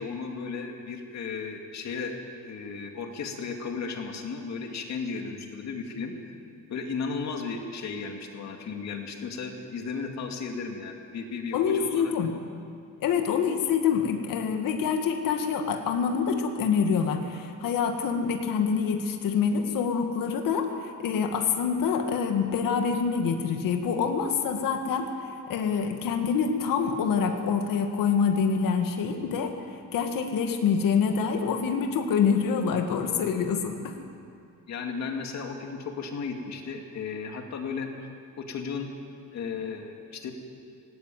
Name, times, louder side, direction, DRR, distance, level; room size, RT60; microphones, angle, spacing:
voice 1, 0.0-6.3 6.7-12.1 34.7-37.9 38.4-38.9 39.3-40.3, left 5 dB, 55° left, 3 dB, 2.5 m, -35 dB
voice 2, 11.5-12.3 13.0-25.1 25.5-29.5 29.9-33.9, left 6 dB, 80° left, 4 dB, 2.1 m, -26 dB
18.5 x 18.0 x 9.2 m, 2.4 s
cardioid pair, 170°, 33 cm